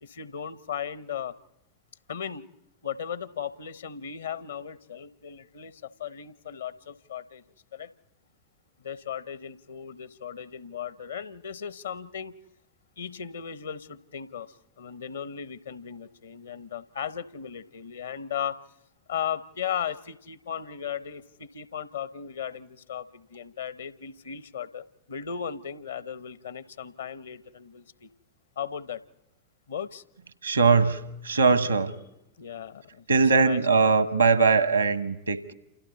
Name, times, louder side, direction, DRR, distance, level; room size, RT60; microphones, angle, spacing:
voice 1, 0.0-1.3 2.1-2.5 2.8-7.4 7.7-7.9 8.8-12.4 13.0-18.6 19.1-28.1 28.6-29.0 29.7-30.0 32.4-33.1 33.3-33.6, left 8 dB, 70° left, 15 dB, 0.9 m, -36 dB
voice 2, 30.4-31.9 33.1-35.5, right 4 dB, 80° right, 12 dB, 1.3 m, -21 dB
28.5 x 28.0 x 4.1 m, 0.88 s
figure-of-eight pair, 90°, 0 cm